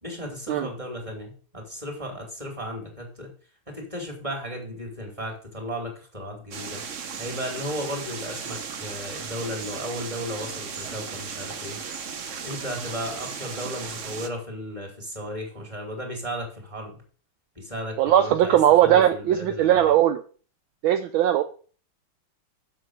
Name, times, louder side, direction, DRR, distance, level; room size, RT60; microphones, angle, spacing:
voice 1, 0.0-3.3 3.7-6.8 7.2-11.8 12.4-17.0 17.5-19.9, equal, 15° right, 0 dB, 3.0 m, -35 dB
sound 1, 6.5-14.3, right 6 dB, 55° right, 0.8 m, -36 dB
voice 2, 18.0-20.2 20.8-21.4, right 11 dB, 75° right, 8 dB, 1.4 m, -19 dB
7.4 x 5.8 x 6.4 m, 0.41 s
omnidirectional pair, 2.4 m